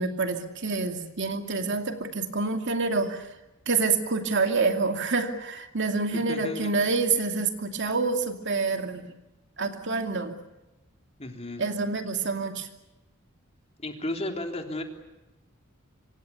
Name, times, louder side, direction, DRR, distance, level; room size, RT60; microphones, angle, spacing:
voice 1, 0.0-3.3 3.7-9.0 9.6-10.4 11.6-12.7, right 4 dB, 60° right, 5 dB, 2.7 m, -27 dB
voice 2, 6.1-6.9 11.2-11.6 13.8-14.8, left 1 dB, 30° left, 3 dB, 3.6 m, -34 dB
26.5 x 26.0 x 7.0 m, 1.0 s
head